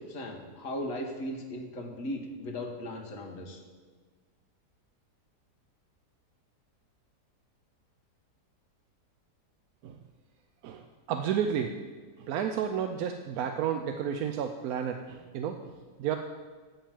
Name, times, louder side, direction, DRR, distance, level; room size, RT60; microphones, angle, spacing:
voice 1, 0.1-3.6, left 1 dB, 55° left, 2 dB, 1.5 m, -37 dB
voice 2, 10.6-11.7 12.2-16.2, right 8 dB, 70° right, 6 dB, 0.9 m, -32 dB
8.6 x 5.3 x 7.4 m, 1.5 s
omnidirectional pair, 1.8 m